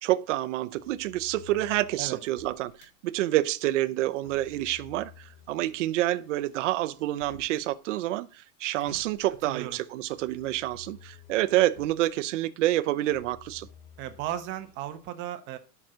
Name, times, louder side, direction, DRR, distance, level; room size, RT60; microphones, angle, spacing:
voice 1, 0.0-2.7 3.0-13.7, right 15 dB, 55° right, 0.8 m, -28 dB
Motor vehicle (road), 0.7-2.9 4.1-7.7 8.8-12.1 13.0-15.0, left 7 dB, 55° left, 4.9 m, -53 dB
voice 2, 9.4-9.8 14.0-15.6, right 12 dB, 25° right, 0.9 m, -35 dB
10.5 x 6.0 x 5.0 m
supercardioid pair, 170°, 43 cm